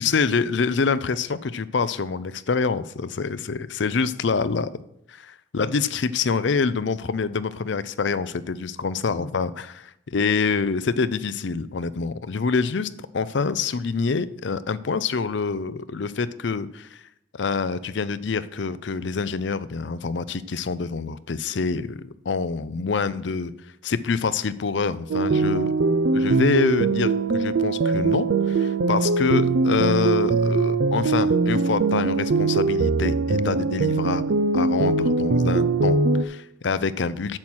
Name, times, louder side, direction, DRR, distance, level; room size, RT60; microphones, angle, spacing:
voice 1, 0.0-4.8 5.5-17.0 17.3-23.5 23.8-25.7 26.1-34.2 34.5-37.4, left 5 dB, 70° left, 15 dB, 0.5 m, -26 dB
sound 1, 25.1-36.2, right 3 dB, 75° right, 0.5 m, -21 dB
8.9 x 7.3 x 6.2 m, 0.82 s
head